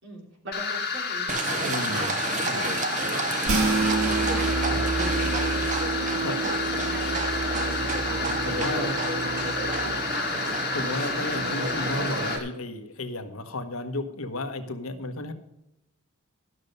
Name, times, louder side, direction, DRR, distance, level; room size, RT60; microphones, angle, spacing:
voice 1, 0.0-2.1 2.5-4.5 5.0-5.3 6.2-7.3 8.4-10.5, right 1 dB, 55° right, 1 dB, 2.9 m, -40 dB
sound 1, 0.5-12.4, left 5 dB, 45° left, 2.1 m, -31 dB
Livestock farm animals working animals, 1.3-12.4, right 3 dB, 35° right, 0.7 m, -31 dB
voice 2, 1.7-2.1 2.5-2.6 4.7-4.8 6.2-6.5 8.5-9.0 10.7-15.3, left 2 dB, 70° left, 7 dB, 1.1 m, -33 dB
sound 2, 3.4-9.9, right 3 dB, 70° right, 1.7 m, -29 dB
12.5 x 6.7 x 5.3 m, 0.84 s
head